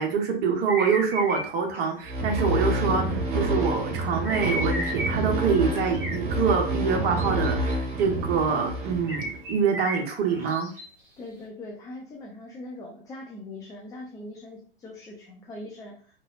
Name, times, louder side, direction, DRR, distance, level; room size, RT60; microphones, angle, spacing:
voice 1, 0.0-10.7, right 6 dB, 35° right, 2 dB, 0.9 m, -25 dB
sound 1, 0.7-1.4 1.7-1.8 4.2-5.2 5.5-6.2 7.2-7.8 9.1-10.9, equal, 10° right, 1.3 m, -33 dB
sound 2, 2.0-9.5, right 1 dB, 55° right, 0.9 m, -28 dB
voice 2, 11.2-16.2, left 2 dB, 10° left, -1 dB, 0.4 m, -41 dB
4.0 x 2.6 x 2.4 m, 0.43 s
figure-of-eight pair, 95°, 29 cm